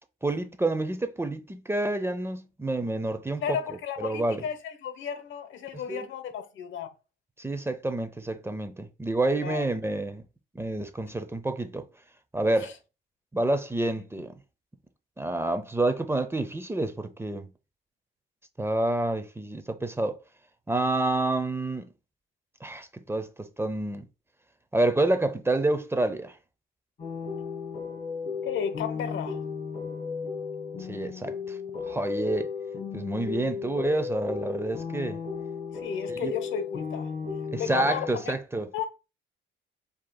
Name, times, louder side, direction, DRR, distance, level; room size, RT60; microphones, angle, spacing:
voice 1, 0.2-3.6 4.0-4.4 5.7-6.1 7.4-10.2 10.5-11.8 12.3-12.7 13.3-14.4 15.2-17.5 18.6-20.2 20.7-21.9 22.6-24.1 24.7-26.3 30.9-31.6 31.9-32.5 32.9-35.2 36.2-36.3 37.5-38.7, right 2 dB, 10° right, 0.6 m, -28 dB
voice 2, 3.4-6.9 9.4-9.7 12.6-12.7 28.4-29.4 35.7-37.1 37.5-38.3 38.7-38.9, left 7 dB, 75° left, 0.9 m, -33 dB
sound 1, 27.0-38.1, left 5 dB, 45° left, 2.5 m, -35 dB
7.3 x 2.8 x 2.3 m
cardioid pair, 90°, 20 cm